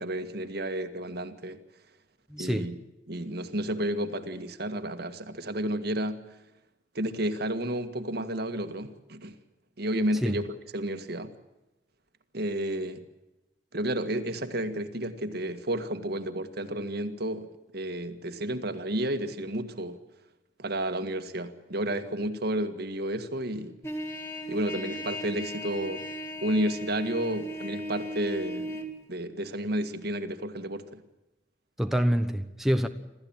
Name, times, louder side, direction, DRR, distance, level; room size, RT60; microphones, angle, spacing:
voice 1, 0.0-1.6 2.4-2.8 3.1-6.2 6.9-9.3 9.8-11.3 12.3-13.0 13.7-17.5 17.7-20.0 20.6-23.8 24.5-26.0 26.4-28.8 29.1-31.0, right 1 dB, 60° right, 1.8 m, -31 dB
voice 2, 2.3-2.7 10.2-10.3 31.8-32.9, equal, ahead, 1.0 m, -26 dB
Trumpet, 23.8-28.9, equal, 15° left, 2.2 m, -36 dB
26.5 x 14.5 x 8.9 m
head